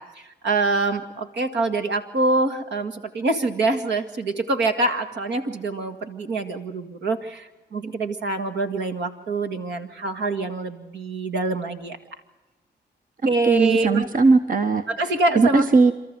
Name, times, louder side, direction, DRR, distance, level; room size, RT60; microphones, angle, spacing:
voice 1, 0.0-12.0 13.3-14.1 14.9-15.7, right 2 dB, 75° right, 6 dB, 2.1 m, -25 dB
voice 2, 13.4-14.8 15.3-15.9, right 4 dB, 50° right, 9 dB, 1.1 m, -18 dB
28.0 x 13.5 x 7.9 m, 1.1 s
cardioid pair, 60°, 18 cm